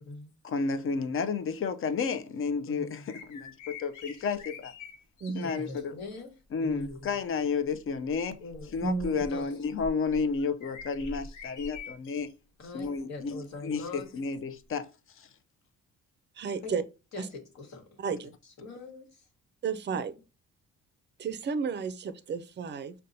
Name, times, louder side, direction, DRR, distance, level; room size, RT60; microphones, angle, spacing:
voice 1, 0.4-4.7 5.3-5.9 6.5-8.4 8.7-12.3 12.7-14.9 15.2-15.3, left 5 dB, 45° left, 0.5 m, -31 dB
voice 2, 2.6-3.1 5.4-7.1 8.4-8.8 9.2-9.5 12.6-14.1 16.6-16.7 17.1-18.0 18.4-19.3, left 3 dB, 65° left, 1.2 m, -43 dB
sound 1, 3.1-5.8 6.7-7.0 7.6-12.3 12.8-13.0 14.8-14.9, left 4 dB, 90° left, 0.7 m, -46 dB
voice 3, 5.2-5.6 8.8-9.2 16.4-16.8 17.2-17.3 18.0-18.3 19.6-20.1 21.2-22.9, right 5 dB, 35° right, 0.4 m, -32 dB
5.3 x 2.2 x 2.6 m
cardioid pair, 90°, 30 cm